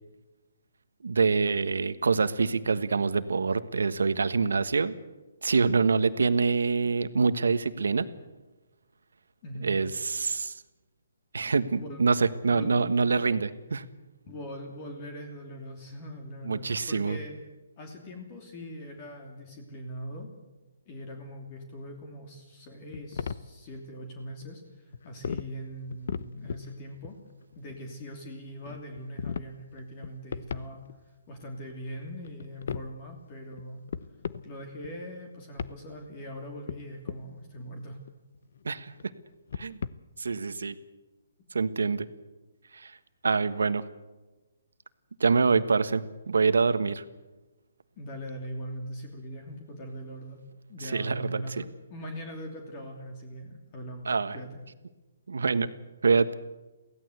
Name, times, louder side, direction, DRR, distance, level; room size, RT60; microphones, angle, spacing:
voice 1, 1.0-4.9 5.4-8.1 9.6-10.5 11.3-13.8 16.4-17.2 38.6-39.1 39.6-39.8 40.2-40.8 41.5-42.1 42.7-42.9 43.2-43.8 45.2-47.0 50.8-51.6 54.0-54.4 55.3-55.7 56.0-56.3, right 4 dB, 85° right, 12 dB, 1.4 m, -25 dB
voice 2, 9.4-9.8 11.7-12.0 12.5-12.7 14.3-17.4 17.8-20.3 20.9-27.2 27.5-30.8 31.3-33.8 34.4-38.0 48.0-50.4 50.7-54.6, equal, 30° left, 3 dB, 3.0 m, -41 dB
sound 1, 22.9-23.5 24.4-24.5 24.9-25.5 25.8-26.7 27.0-28.0 28.6-29.5 29.8-31.1 31.4-31.5 31.7-32.9 33.5-33.6 33.9-34.5 34.8-35.2 35.6-35.8 36.4-37.2 37.9-39.0 39.3-39.9, left 6 dB, 60° left, 0.9 m, -37 dB
23.0 x 16.5 x 8.1 m, 1.1 s
hypercardioid pair, 160°, 0 cm